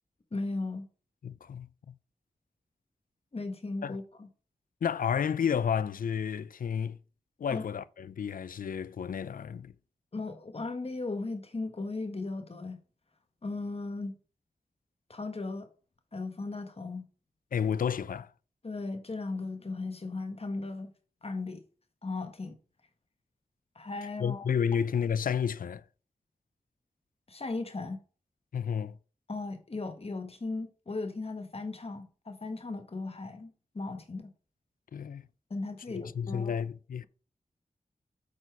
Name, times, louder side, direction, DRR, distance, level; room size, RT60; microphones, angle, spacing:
voice 1, 0.3-0.9 3.3-4.3 7.5-7.6 10.1-12.8 13.4-14.1 15.1-15.7 16.1-17.1 18.6-20.9 21.2-21.6 22.0-22.6 23.7-24.4 27.3-28.0 29.3-34.3 35.5-36.6, left 3 dB, 45° left, 1.4 m, -37 dB
voice 2, 1.2-1.9 3.8-4.0 4.8-7.0 7.4-9.7 17.5-18.3 24.2-25.8 28.5-29.0 34.9-35.2 35.9-37.1, left 7 dB, 70° left, 0.4 m, -31 dB
8.4 x 4.2 x 4.6 m
wide cardioid pair, 65°, 15 cm